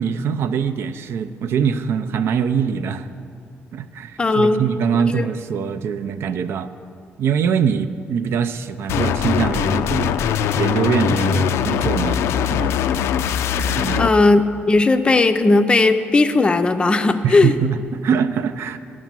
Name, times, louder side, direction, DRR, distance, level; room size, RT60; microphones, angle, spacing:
voice 1, 0.0-3.1 3.7-6.7 7.2-10.2 10.6-12.2 12.5-12.7 13.8-14.1 17.2-18.8, right 7 dB, 70° right, 11 dB, 0.4 m, -23 dB
voice 2, 4.2-4.6 5.1-5.3 14.0-17.6, left 3 dB, 25° left, 9 dB, 0.4 m, -16 dB
sound 1, 8.9-14.1, left 8 dB, 85° left, 0.3 m, -21 dB
9.2 x 6.0 x 7.4 m, 2.4 s
cardioid pair, 115°, 4 cm